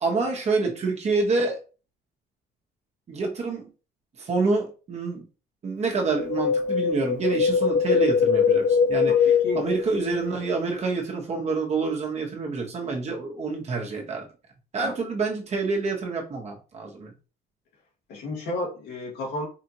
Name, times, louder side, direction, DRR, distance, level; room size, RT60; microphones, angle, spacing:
voice 1, 0.0-1.6 3.1-3.7 4.2-5.2 5.6-14.3 14.7-17.1, right 4 dB, 40° right, 1.3 m, -27 dB
Wind, 6.1-10.4 10.7-10.8, left 6 dB, 50° left, 0.4 m, -22 dB
voice 2, 9.0-9.6 14.8-14.9 18.1-19.5, left 2 dB, 80° left, 1.8 m, -32 dB
4.9 x 2.6 x 3.0 m
cardioid pair, 110°, 17 cm